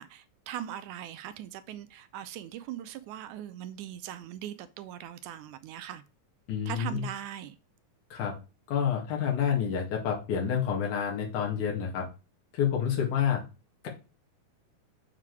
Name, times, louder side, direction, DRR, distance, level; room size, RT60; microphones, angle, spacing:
voice 1, 0.0-6.0 6.7-7.6, right 11 dB, 80° right, 2.0 m, -40 dB
voice 2, 6.5-7.1 8.1-8.3 8.7-12.1 12.5-13.4, left 8 dB, 70° left, 3.3 m, -28 dB
7.4 x 3.8 x 4.6 m
omnidirectional pair, 3.8 m